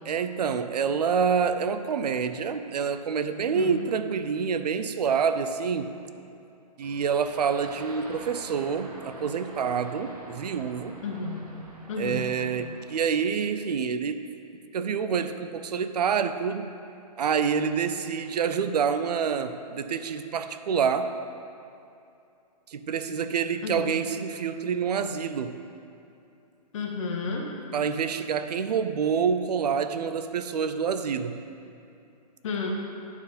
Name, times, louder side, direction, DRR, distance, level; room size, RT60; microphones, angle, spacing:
voice 1, 0.1-5.9 6.8-11.0 12.0-16.7 17.2-21.1 22.7-25.6 27.7-31.4, right 6 dB, 75° right, 10 dB, 0.6 m, -27 dB
voice 2, 3.5-3.8 11.0-11.6 11.9-12.4 23.6-23.9 26.7-27.5 32.4-32.7, left 4 dB, 50° left, 0 dB, 1.3 m, -32 dB
sound 1, 6.8-13.1, right 1 dB, 60° right, 1.6 m, -45 dB
9.6 x 4.6 x 5.1 m, 2.7 s
hypercardioid pair, 150°, 21 cm